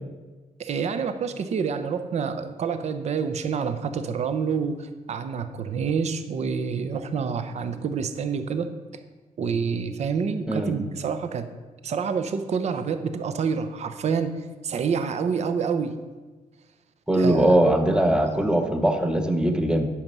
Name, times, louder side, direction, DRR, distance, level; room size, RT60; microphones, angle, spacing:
voice 1, 0.6-8.7 9.4-11.5 11.8-16.0 17.1-17.6 18.5-18.6, right 6 dB, 50° right, 10 dB, 0.7 m, -27 dB
voice 2, 17.1-19.9, right 1 dB, 5° right, 6 dB, 0.8 m, -21 dB
8.7 x 6.1 x 5.4 m, 1.3 s
cardioid pair, 125°, 14 cm